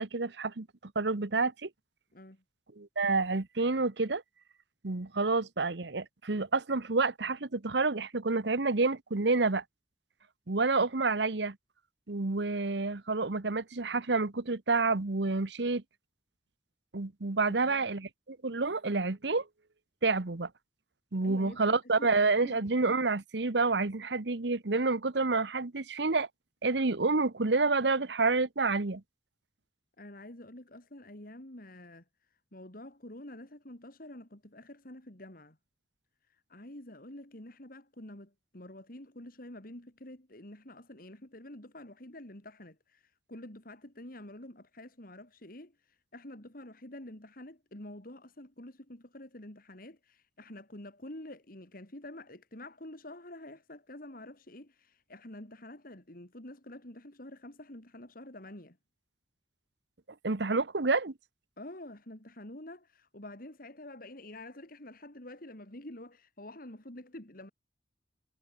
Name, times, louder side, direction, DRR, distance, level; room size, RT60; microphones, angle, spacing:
voice 1, 0.0-1.7 2.8-4.2 4.8-9.6 10.5-11.6 12.1-15.8 16.9-19.5 20.0-20.5 21.1-26.3 26.6-29.0 60.2-61.1, right 3 dB, 70° right, 1.1 m, -29 dB
voice 2, 2.1-2.4 17.5-17.9 21.2-22.1 22.4-22.7 30.0-32.0 32.5-35.6 36.3-58.8 61.6-67.5, left 1 dB, 50° left, 3.4 m, -48 dB
head